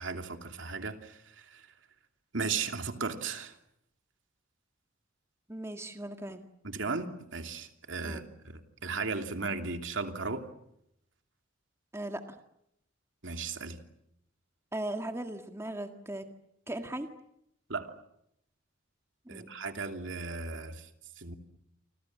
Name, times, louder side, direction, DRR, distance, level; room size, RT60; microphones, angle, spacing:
voice 1, 0.0-1.7 2.3-3.6 6.6-10.5 13.2-13.8 17.7-17.9 19.3-20.9 21.2-21.4, right 4 dB, 70° right, 6 dB, 2.9 m, -36 dB
voice 2, 5.5-6.4 8.0-8.2 11.9-12.2 14.7-16.2 16.7-17.1 19.3-19.5, right 1 dB, 15° right, 6 dB, 1.9 m, -38 dB
30.0 x 26.0 x 7.5 m, 0.78 s
head